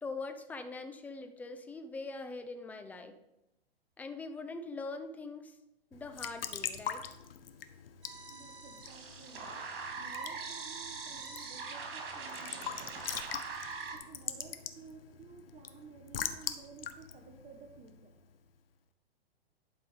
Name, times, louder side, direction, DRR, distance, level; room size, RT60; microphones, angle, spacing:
voice 1, 0.0-3.2 4.0-5.6 5.9-7.0, left 3 dB, 5° left, 8 dB, 0.4 m, -42 dB
Raindrop / Drip / Trickle dribble, 5.9-18.4, left 8 dB, 65° left, 0.9 m, -43 dB
sound 1, 8.0-14.0, right 4 dB, 60° right, 2.2 m, -42 dB
voice 2, 8.3-9.5 10.0-13.4 13.9-18.1, right 6 dB, 20° right, 2 dB, 0.8 m, -54 dB
11.0 x 4.9 x 5.1 m, 0.93 s
hypercardioid pair, 115°, 31 cm